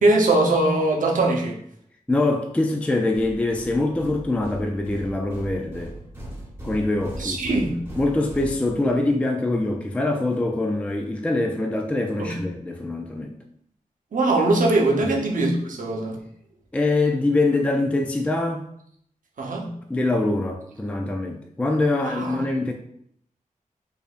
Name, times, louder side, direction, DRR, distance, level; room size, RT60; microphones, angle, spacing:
voice 1, 0.0-1.6 7.2-7.8 12.2-12.4 14.1-16.2 19.4-19.7 22.0-22.4, right 2 dB, 75° right, 0 dB, 0.7 m, -21 dB
voice 2, 2.1-5.9 6.6-7.4 8.0-13.3 15.0-15.2 16.7-18.7 19.9-22.7, left 2 dB, 10° left, 3 dB, 0.3 m, -24 dB
sound 1, 3.1-9.1, right 1 dB, 15° right, 1.1 m, -39 dB
4.7 x 2.6 x 2.4 m, 0.68 s
wide cardioid pair, 135°, 14 cm